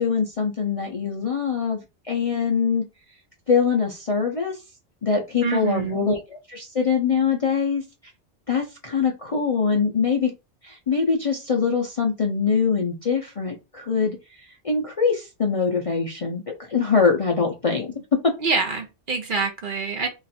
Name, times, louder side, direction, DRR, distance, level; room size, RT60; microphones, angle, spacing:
voice 1, 0.0-1.8 2.1-2.8 3.5-4.6 5.0-7.8 8.5-10.3 10.6-14.2 14.6-16.4 16.7-17.9, left 5 dB, 40° left, 0.5 m, -23 dB
voice 2, 5.4-6.2 18.4-20.1, right 4 dB, 50° right, 0.8 m, -26 dB
3.0 x 2.5 x 4.1 m
omnidirectional pair, 1.2 m